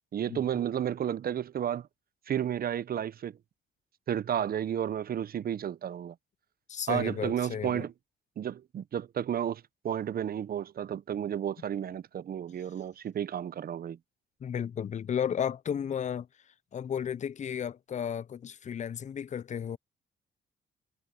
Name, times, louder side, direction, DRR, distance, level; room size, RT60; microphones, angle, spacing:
voice 1, 0.1-1.9 2.3-3.4 4.1-6.2 6.9-7.9 8.4-14.0, right 9 dB, 50° right, 0.7 m, -32 dB
voice 2, 6.7-7.9 14.4-16.3 16.7-19.8, left 8 dB, 35° left, 0.5 m, -33 dB
cardioid pair, 90°, 20 cm